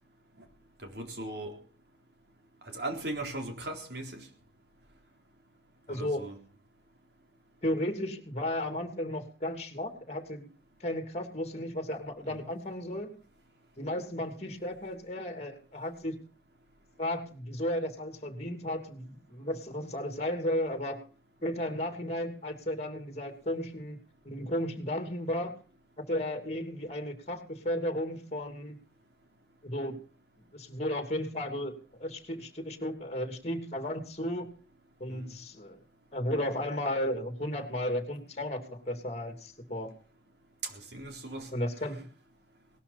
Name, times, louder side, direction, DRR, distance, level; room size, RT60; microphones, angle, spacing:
voice 1, 0.9-1.6 2.7-4.3 5.9-6.4 12.3-12.4 35.1-35.3 40.6-41.5, right 2 dB, 65° right, 3.9 m, -38 dB
voice 2, 5.9-6.2 7.6-10.5 10.8-13.1 13.8-16.2 17.0-21.0 21.4-24.0 24.2-25.5 26.0-28.8 29.6-30.0 30.5-31.7 32.0-34.5 35.0-35.8 36.1-39.9 41.5-42.1, left 1 dB, 35° left, 2.9 m, -34 dB
19.0 x 13.0 x 4.2 m
head